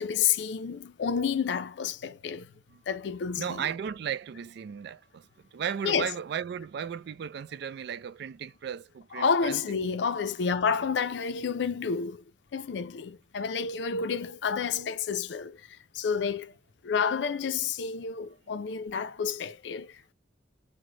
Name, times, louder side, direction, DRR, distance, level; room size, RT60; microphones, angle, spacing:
voice 1, 0.0-2.5 2.9-3.7 5.8-6.1 9.1-12.2 12.5-16.5 16.8-20.1, left 6 dB, 70° left, 0.4 m, -30 dB
voice 2, 3.4-5.2 5.5-9.6 9.9-10.0, right 8 dB, 65° right, 0.3 m, -35 dB
3.2 x 2.1 x 3.6 m
head